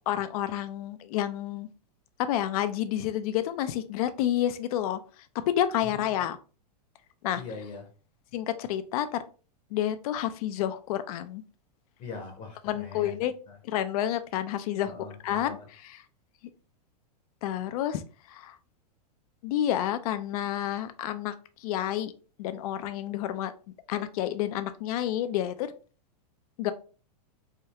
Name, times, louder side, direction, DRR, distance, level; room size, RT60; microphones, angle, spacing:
voice 1, 0.1-1.7 2.2-5.0 5.5-6.4 7.2-7.4 8.3-9.2 9.7-11.4 12.6-13.3 13.6-14.9 15.2-15.6 15.8-16.0 17.4-18.0 18.3-18.5 19.4-21.3 21.6-22.1 22.4-23.5 23.9-25.7 26.6-26.7, left 11 dB, 60° left, 0.5 m, -29 dB
voice 2, 5.8-6.2 7.3-7.9 12.0-13.6 14.9-15.7, left 4 dB, 35° left, 0.8 m, -42 dB
3.4 x 2.2 x 2.9 m
hypercardioid pair, 120°, 21 cm